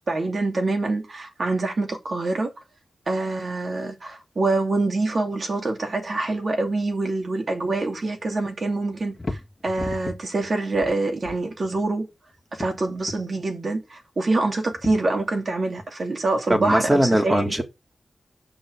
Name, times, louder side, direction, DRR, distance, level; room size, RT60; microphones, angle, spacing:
voice 1, 0.1-2.5 3.1-9.4 9.6-12.1 12.5-17.6, right 2 dB, 55° right, 2.6 m, -25 dB
sound 1, 5.9-7.3 7.6-8.4 8.8-12.0 12.3-13.4 14.3-15.4 15.8-15.9, left 2 dB, 35° left, 1.7 m, -38 dB
voice 2, 16.5-17.6, right 1 dB, 20° right, 2.2 m, -20 dB
6.8 x 6.2 x 4.8 m
cardioid pair, 60°, 0 cm